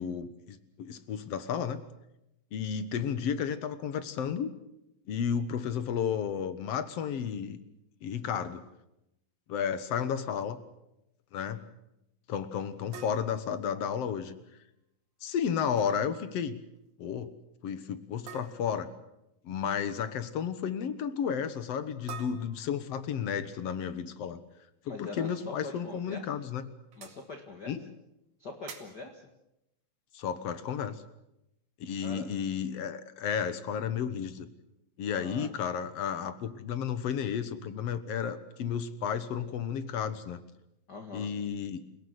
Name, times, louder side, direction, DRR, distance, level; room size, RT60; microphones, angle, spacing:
voice 1, 0.0-1.8 2.5-4.5 5.1-7.6 8.0-8.6 9.5-10.6 11.3-11.6 12.3-14.4 15.2-16.6 17.0-17.3 17.6-18.9 19.4-24.4 24.9-26.7 27.7-27.8 30.1-31.0 31.8-34.5 35.0-40.4 41.1-41.8, left 7 dB, 60° left, 12 dB, 1.9 m, -32 dB
sound 1, 12.9-14.3 15.5-15.9 16.2-16.5 16.8-16.9 18.3-18.9 22.1-23.3 25.3-25.4 25.9-26.0 26.9-27.2 28.7-29.1, right 7 dB, 60° right, 3.6 m, -48 dB
voice 2, 24.8-26.2 27.0-27.7 28.4-29.2 32.0-32.3 35.1-35.5 40.9-41.3, left 3 dB, 40° left, 5 dB, 1.8 m, -43 dB
28.5 x 17.5 x 8.2 m, 0.88 s
omnidirectional pair, 4.1 m